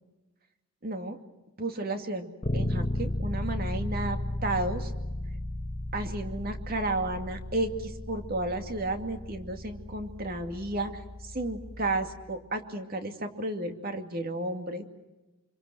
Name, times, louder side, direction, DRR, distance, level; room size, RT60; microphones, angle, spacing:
voice 1, 0.8-1.2 1.6-4.9 5.9-14.8, right 2 dB, 45° right, 6 dB, 2.4 m, -33 dB
Bass guitar, 2.4-12.3, left 1 dB, 30° left, 1.3 m, -35 dB
26.5 x 25.0 x 7.8 m, 1.1 s
head